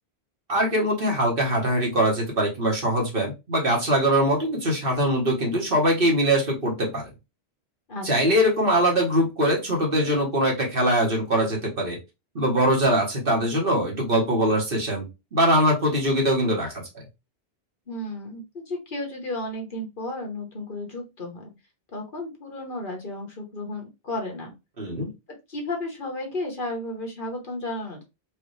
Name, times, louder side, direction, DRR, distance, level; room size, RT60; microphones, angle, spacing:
voice 1, 0.5-7.1 8.0-12.0 12.3-17.0 24.8-25.1, right 1 dB, 60° right, 0 dB, 1.6 m, -22 dB
voice 2, 7.9-8.4 17.9-21.5 21.9-24.5 25.5-28.0, left 1 dB, 55° left, 1 dB, 1.4 m, -33 dB
4.7 x 2.6 x 3.2 m, 0.25 s
omnidirectional pair, 1.0 m